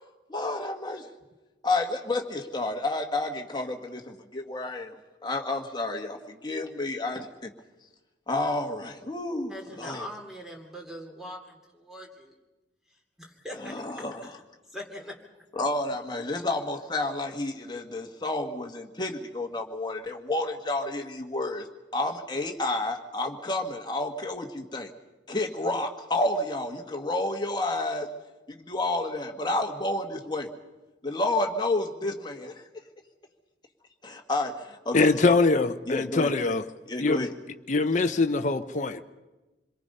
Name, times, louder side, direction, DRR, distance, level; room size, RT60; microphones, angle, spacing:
voice 1, 0.3-1.1 1.6-4.9 5.2-7.5 8.3-10.1 13.6-14.3 15.5-21.7 21.9-24.9 25.3-28.1 28.5-30.5 31.0-32.6 34.0-35.1 35.9-36.3 36.9-37.3, left 2 dB, 25° left, 1.6 m, -30 dB
voice 2, 9.5-12.3 13.2-13.7 14.2-14.3 14.7-15.2, equal, ahead, 2.9 m, -41 dB
voice 3, 34.9-36.6 37.0-37.3 37.7-39.0, left 3 dB, 40° left, 0.8 m, -23 dB
27.0 x 22.5 x 5.5 m
head